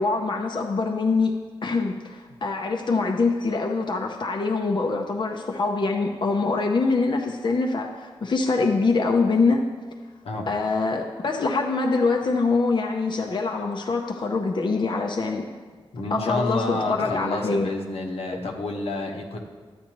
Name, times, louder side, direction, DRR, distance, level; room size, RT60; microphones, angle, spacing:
voice 1, 0.0-1.3 1.6-9.6 10.5-15.5 16.1-17.7, left 3 dB, 55° left, 2 dB, 0.6 m, -24 dB
voice 2, 15.9-19.4, left 2 dB, 85° left, 0 dB, 1.0 m, -29 dB
12.0 x 8.2 x 3.0 m, 1.5 s
wide cardioid pair, 80°, 10 cm